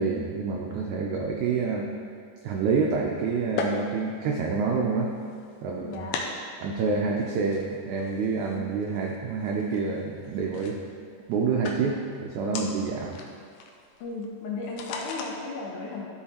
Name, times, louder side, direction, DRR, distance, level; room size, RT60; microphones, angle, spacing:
voice 1, 0.0-1.9 2.4-5.1 5.6-6.0 6.6-10.8 11.3-13.2, right 4 dB, 85° right, 0 dB, 1.7 m, -27 dB
sound 1, 2.5-15.3, left 4 dB, 90° left, 2.5 m, -40 dB
voice 2, 5.8-6.2 14.0-16.1, left 3 dB, 70° left, -2 dB, 2.1 m, -35 dB
13.0 x 5.6 x 2.9 m, 2.3 s
omnidirectional pair, 4.1 m